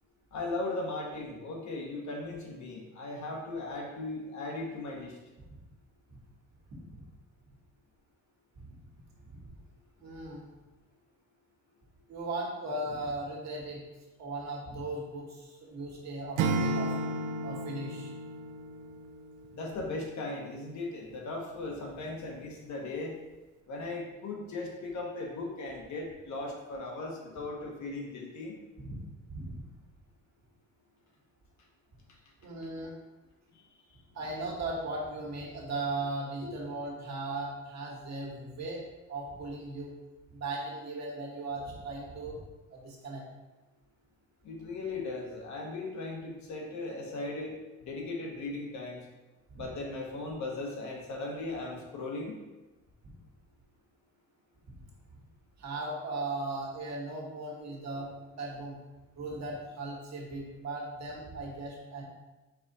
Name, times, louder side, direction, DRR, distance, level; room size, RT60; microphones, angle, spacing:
voice 1, 0.3-5.2 19.5-23.2 23.7-28.5 32.1-32.2 33.5-34.0 36.4-36.6 44.4-47.5 47.8-49.1 49.6-52.4, left 2 dB, 70° left, 0 dB, 1.1 m, -38 dB
voice 2, 6.7-7.0 9.3-9.4 10.0-10.5 12.1-13.8 14.2-16.9 17.4-18.1 28.8-29.0 29.3-29.6 32.4-32.9 34.1-38.8 39.1-39.9 40.3-42.4 42.7-43.2 49.5-49.6 53.0-53.1 55.6-58.8 59.2-62.0, right 2 dB, 60° right, -2 dB, 1.4 m, -37 dB
Acoustic guitar / Strum, 16.4-19.4, right 2 dB, 85° right, 0.5 m, -32 dB
4.8 x 2.5 x 4.0 m, 1.1 s
cardioid pair, 90°, 30 cm